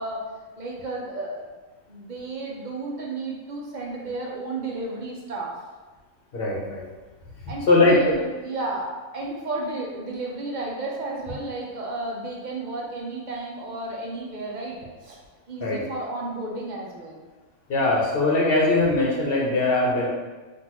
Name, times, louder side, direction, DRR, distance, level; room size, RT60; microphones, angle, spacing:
voice 1, 0.0-1.4 1.9-5.6 7.5-15.2 15.5-17.2, right 2 dB, 45° right, -2 dB, 0.6 m, -32 dB
voice 2, 6.3-6.8 7.4-8.2 15.6-15.8 17.7-20.1, left 2 dB, 50° left, -3 dB, 1.0 m, -21 dB
6.0 x 2.6 x 3.0 m, 1.3 s
omnidirectional pair, 1.5 m